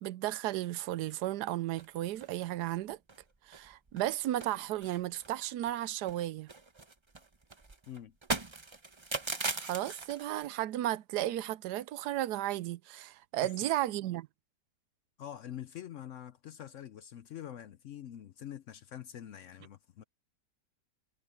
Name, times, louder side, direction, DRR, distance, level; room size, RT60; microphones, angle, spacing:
voice 1, 0.0-3.0 3.5-6.5 9.7-14.3, right 14 dB, 80° right, 1.2 m, -34 dB
sound 1, 1.8-2.3 2.7-2.8 3.1-3.2 3.5-4.1 4.4-5.8 6.1-10.5, right 3 dB, 20° right, 0.9 m, -39 dB
voice 2, 15.2-20.0, left 10 dB, 65° left, 0.8 m, -45 dB
omnidirectional pair, 1.7 m